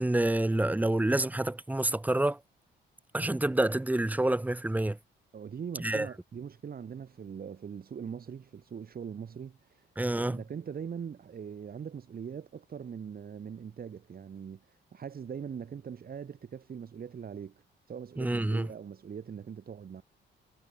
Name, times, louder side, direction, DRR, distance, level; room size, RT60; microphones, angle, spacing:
voice 1, 0.0-2.4 3.1-5.0 5.8-6.1 10.0-10.4 18.2-18.7, right 1 dB, 10° right, 0.9 m, -28 dB
voice 2, 5.3-20.0, right 7 dB, 50° right, 5.0 m, -42 dB
cardioid pair, 90°, 20 cm